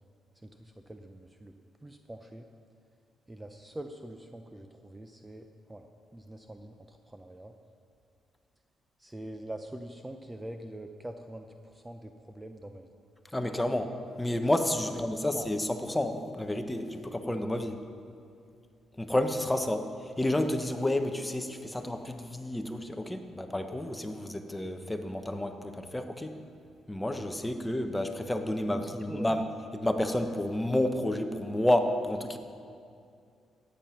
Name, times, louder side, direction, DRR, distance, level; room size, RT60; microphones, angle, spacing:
voice 1, 0.4-1.5 1.8-2.5 3.3-5.9 6.1-7.5 9.0-12.9 14.8-15.5 28.7-29.3, right 1 dB, 15° right, 6 dB, 0.6 m, -44 dB
voice 2, 13.3-13.9 14.2-17.8 19.0-26.4 26.9-29.4 29.7-32.4, left 1 dB, 10° left, 6 dB, 1.0 m, -30 dB
13.5 x 9.2 x 5.8 m, 2.4 s
cardioid pair, 90°, 0 cm